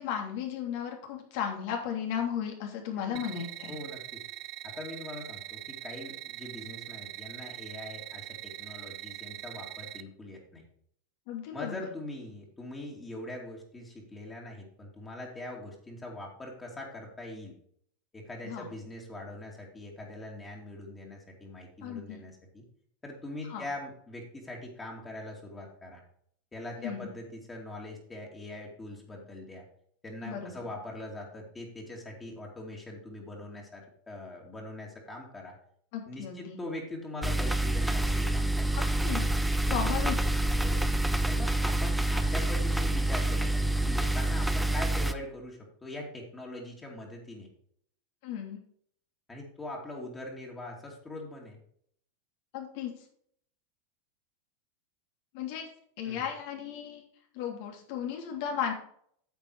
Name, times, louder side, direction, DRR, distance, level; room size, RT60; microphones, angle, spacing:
voice 1, 0.0-3.7 11.3-11.9 18.4-18.7 21.8-22.2 23.5-23.6 26.8-27.1 30.2-30.5 35.9-36.6 38.8-39.3 39.6-40.2 48.2-48.6 52.5-52.9 55.3-55.7 56.0-57.0 57.3-58.7, left 8 dB, 65° left, 2 dB, 2.9 m, -35 dB
voice 2, 3.0-3.3 3.7-4.2 4.6-10.6 11.5-17.5 18.1-22.6 23.0-26.0 26.5-29.6 30.0-35.6 36.1-38.9 40.6-40.9 41.3-47.5 49.3-51.6 56.0-56.3, left 1 dB, 15° left, -2 dB, 2.7 m, -42 dB
sound 1, 3.2-10.0, right 16 dB, 55° right, 0.6 m, -42 dB
sound 2, 37.2-45.1, right 1 dB, 5° right, 0.7 m, -27 dB
9.2 x 6.9 x 4.8 m, 0.64 s
hypercardioid pair, 110°, 0 cm